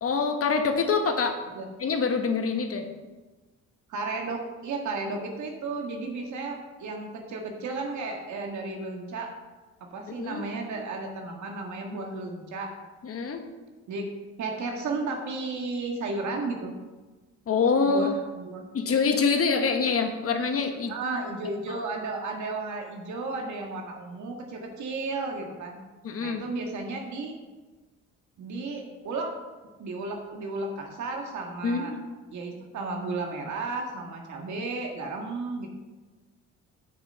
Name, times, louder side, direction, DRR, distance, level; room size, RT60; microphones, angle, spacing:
voice 1, 0.0-1.4 1.8-2.9 10.1-10.4 13.0-13.4 17.5-18.2 18.7-21.0 21.7-21.8 26.0-26.4 31.6-32.0, left 5 dB, 50° left, 5 dB, 1.3 m, -25 dB
voice 2, 3.9-9.3 9.8-12.7 13.9-14.1 14.4-16.8 17.9-18.6 20.9-25.8 26.2-27.3 28.4-29.3 29.8-31.9 32.3-35.7, right 3 dB, 70° right, 2 dB, 1.7 m, -33 dB
8.7 x 6.5 x 6.6 m, 1.2 s
cardioid pair, 90°, 30 cm